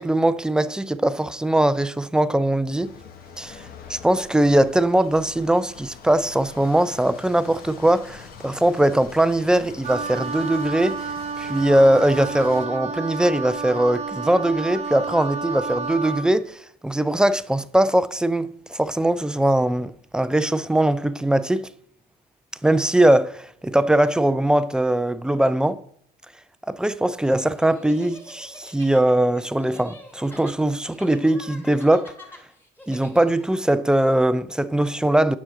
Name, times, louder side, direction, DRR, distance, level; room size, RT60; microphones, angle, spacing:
voice 1, 0.0-2.9 3.4-3.6 3.9-11.1 11.4-21.7 22.6-25.8 26.7-32.1 32.9-35.4, right 1 dB, 5° right, 0.3 m, -21 dB
sound 1, 2.8-12.7, left 6 dB, 60° left, 1.3 m, -44 dB
Wind instrument woodwind instrument, 9.8-16.3, right 5 dB, 40° right, 0.8 m, -31 dB
sound 2, 27.6-33.6, left 1 dB, 10° left, 2.1 m, -45 dB
9.0 x 6.2 x 3.7 m
cardioid pair, 110°, 17 cm